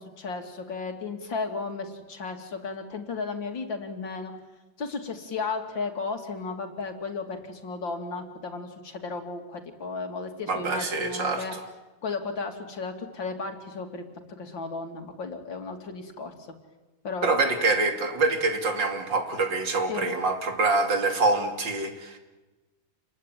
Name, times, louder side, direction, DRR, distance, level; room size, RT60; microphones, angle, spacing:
voice 1, 0.0-4.3 4.8-11.5 12.0-14.0 14.3-16.3 17.0-17.3 19.9-20.1, left 4 dB, 70° left, 5 dB, 3.3 m, -34 dB
voice 2, 10.5-11.6 17.2-22.2, right 3 dB, 65° right, 5 dB, 3.3 m, -25 dB
29.0 x 21.5 x 9.2 m, 1.1 s
omnidirectional pair, 2.1 m